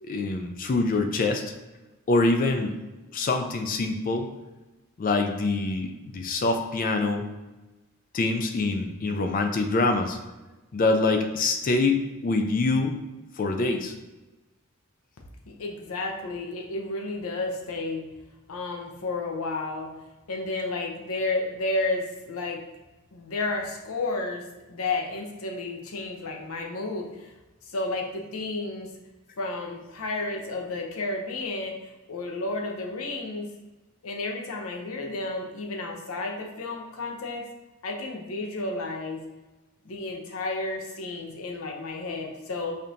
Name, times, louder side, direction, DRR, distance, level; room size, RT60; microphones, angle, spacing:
voice 1, 0.0-1.4 2.1-2.7 3.1-4.3 5.0-7.3 8.1-10.2 10.7-13.0 13.4-13.9, left 3 dB, 40° left, 5 dB, 0.3 m, -25 dB
voice 2, 15.5-18.1 18.5-19.9 20.3-22.6 23.1-27.3 27.6-28.9 29.4-31.7 32.1-33.5 34.0-37.5 37.8-39.2 39.8-42.8, left 2 dB, 75° left, 1 dB, 0.7 m, -32 dB
5.1 x 2.8 x 2.6 m, 1.1 s
head